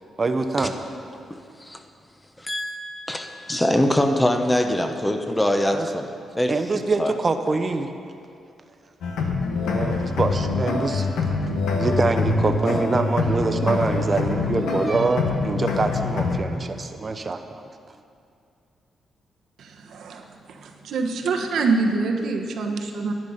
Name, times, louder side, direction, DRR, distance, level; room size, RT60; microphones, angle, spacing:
voice 1, 0.2-0.7 5.7-5.9 6.5-7.9 9.7-11.1 11.7-17.4, right 3 dB, 35° right, 0.7 m, -24 dB
voice 2, 2.4-7.1, left 1 dB, 10° left, 0.8 m, -23 dB
sound 1, 9.0-16.4, left 3 dB, 90° left, 1.2 m, -25 dB
voice 3, 19.6-23.1, right 3 dB, 75° right, 1.1 m, -25 dB
11.0 x 10.0 x 5.6 m
cardioid pair, 95°, 0 cm